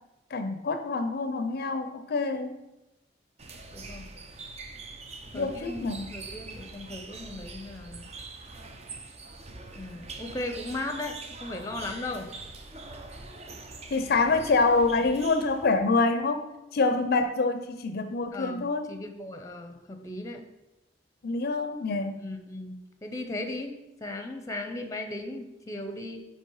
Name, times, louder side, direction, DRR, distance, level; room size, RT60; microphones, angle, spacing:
voice 1, 0.3-2.5 5.3-6.1 13.9-16.5 16.7-18.9 21.2-22.2, left 3 dB, 60° left, 8 dB, 0.5 m, -26 dB
sound 1, 3.4-15.9, right 3 dB, 35° right, 0.6 m, -44 dB
voice 2, 3.7-4.2 5.3-8.1 9.8-12.3 18.3-20.4 22.2-26.2, left 2 dB, 20° left, 5 dB, 0.7 m, -37 dB
9.4 x 3.3 x 4.7 m, 0.96 s
head